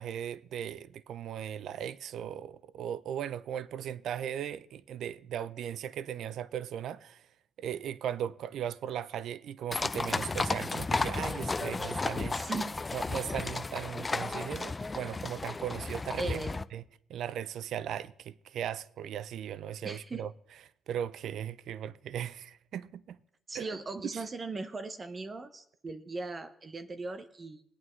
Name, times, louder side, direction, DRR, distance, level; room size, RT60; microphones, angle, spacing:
voice 1, 0.0-7.2 7.6-12.4 12.9-16.4 16.7-16.8 17.1-20.3 20.9-23.2 23.5-23.8 24.1-24.2, right 9 dB, 75° right, 0.4 m, -37 dB
sound 1, 9.7-16.6, left 3 dB, 25° left, 0.4 m, -33 dB
voice 2, 12.3-12.8 16.2-16.6 19.8-20.3 23.5-27.6, right 3 dB, 30° right, 0.7 m, -39 dB
21.0 x 8.7 x 3.1 m
cardioid pair, 90°, 0 cm